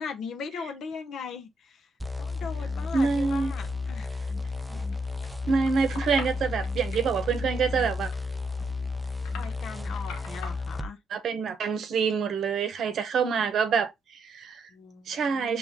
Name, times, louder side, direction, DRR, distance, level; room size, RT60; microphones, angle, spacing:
voice 1, 0.0-1.9 2.2-4.1 4.7-4.9 9.3-11.0 14.7-15.6, left 5 dB, 65° left, 0.7 m, -39 dB
sound 1, 2.0-10.9, left 3 dB, 5° right, 0.4 m, -33 dB
voice 2, 2.9-3.5 5.5-8.1 11.1-14.7 15.1-15.6, right 5 dB, 60° right, 0.8 m, -26 dB
sound 2, 4.8-10.5, left 5 dB, 85° left, 1.0 m, -45 dB
5.2 x 3.1 x 2.8 m
cardioid pair, 100°, 0 cm